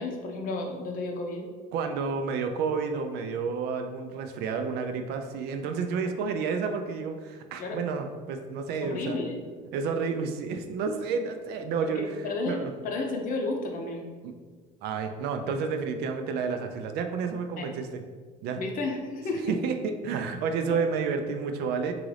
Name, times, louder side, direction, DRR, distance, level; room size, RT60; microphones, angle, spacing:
voice 1, 0.0-1.5 7.6-7.8 8.8-9.4 11.8-14.1 17.6-17.7 18.5-19.6 20.7-20.8, left 2 dB, 50° left, 2 dB, 0.7 m, -32 dB
voice 2, 1.7-9.2 9.7-12.0 12.5-12.7 14.2-14.3 14.8-18.0 18.4-18.6 19.5-19.8 20.0-21.9, right 5 dB, 65° right, 6 dB, 0.4 m, -30 dB
3.8 x 2.5 x 3.2 m, 1.5 s
supercardioid pair, 100°, 18 cm